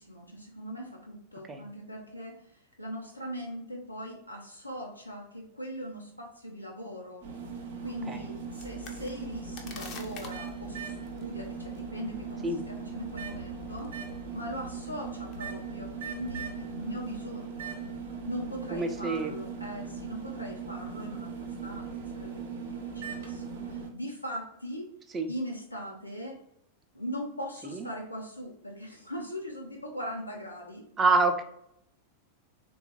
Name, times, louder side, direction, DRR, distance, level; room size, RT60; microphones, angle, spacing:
voice 1, 0.0-7.3 7.8-14.0 14.3-17.8 18.2-24.9 25.3-26.4 26.9-30.9, equal, 85° left, 0 dB, 0.7 m, -40 dB
sound 1, 7.2-23.9, right 5 dB, 60° right, 0.6 m, -39 dB
sound 2, 8.6-20.7, left 3 dB, 35° left, 0.5 m, -52 dB
voice 2, 18.7-19.3 25.1-25.3 27.6-27.9 31.0-31.4, right 3 dB, 20° right, 6 dB, 0.4 m, -26 dB
3.6 x 2.3 x 2.9 m, 0.75 s
figure-of-eight pair, 90°, 0 cm